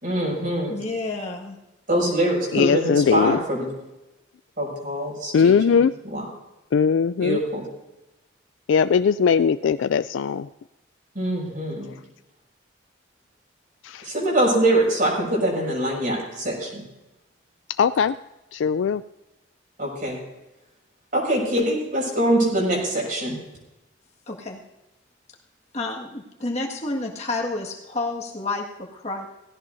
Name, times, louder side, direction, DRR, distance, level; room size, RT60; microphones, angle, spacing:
voice 1, 0.0-0.7 1.9-3.7 4.6-5.8 6.0-6.3 7.2-7.7 11.1-11.9 14.0-16.8 19.8-20.2 21.1-23.4, right 1 dB, 45° right, -3 dB, 6.1 m, -23 dB
voice 2, 0.7-1.6 24.3-24.6 25.7-29.3, left 2 dB, 35° left, 0 dB, 1.8 m, -30 dB
voice 3, 2.5-3.4 5.3-5.9 6.7-7.4 8.7-10.5 13.8-14.1 17.8-18.1 18.5-19.0, left 6 dB, 75° left, 12 dB, 0.3 m, -20 dB
18.0 x 16.5 x 2.7 m, 0.99 s
head